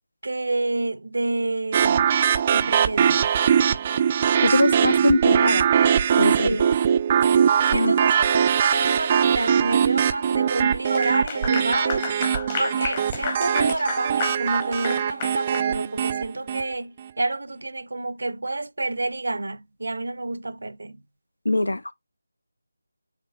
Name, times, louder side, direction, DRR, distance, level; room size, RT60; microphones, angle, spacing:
voice 1, 0.2-2.2 2.5-3.4 6.4-6.7 7.7-12.1 12.6-21.0, right 2 dB, 70° right, 0.6 m, -29 dB
sound 1, 1.7-16.7, right 8 dB, 25° right, 0.3 m, -21 dB
voice 2, 4.4-5.7 6.2-6.6 7.7-7.9 21.4-21.9, left 2 dB, 80° left, 0.6 m, -22 dB
Clapping / Applause, 10.8-15.7, left 5 dB, 25° left, 1.0 m, -32 dB
7.1 x 3.1 x 2.3 m
figure-of-eight pair, 160°, 0 cm